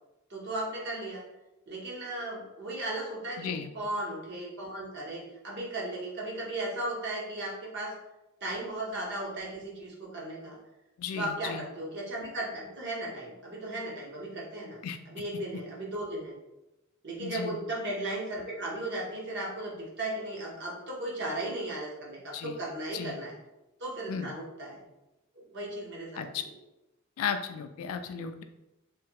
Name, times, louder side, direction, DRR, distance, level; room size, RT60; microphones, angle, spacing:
voice 1, 0.3-1.2 1.7-7.9 8.4-10.6 11.1-14.8 15.1-16.3 17.0-23.3 23.8-24.8 25.4-26.5, right 1 dB, 55° right, -3 dB, 0.9 m, -36 dB
voice 2, 3.4-3.7 11.0-11.6 14.8-15.0 17.2-17.6 22.3-22.6 22.9-23.2 24.1-24.3 26.2-26.4 27.2-28.4, left 7 dB, 80° left, 9 dB, 0.3 m, -35 dB
3.1 x 2.2 x 2.8 m, 0.94 s
head